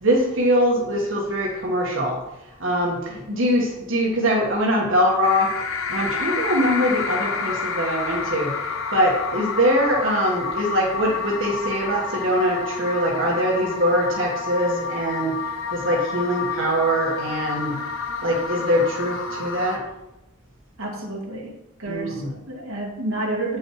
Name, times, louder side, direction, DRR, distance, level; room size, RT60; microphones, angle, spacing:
voice 1, 0.0-2.2 2.6-5.5 5.9-8.6 8.9-15.4 15.7-17.8 18.2-19.8 21.9-22.3, equal, 65° right, -3 dB, 1.6 m, -22 dB
sound 1, 5.2-19.8, left 5 dB, 75° left, 1.0 m, -29 dB
voice 2, 20.8-23.6, right 2 dB, 85° right, -1 dB, 2.1 m, -30 dB
9.1 x 6.3 x 4.9 m, 0.93 s
head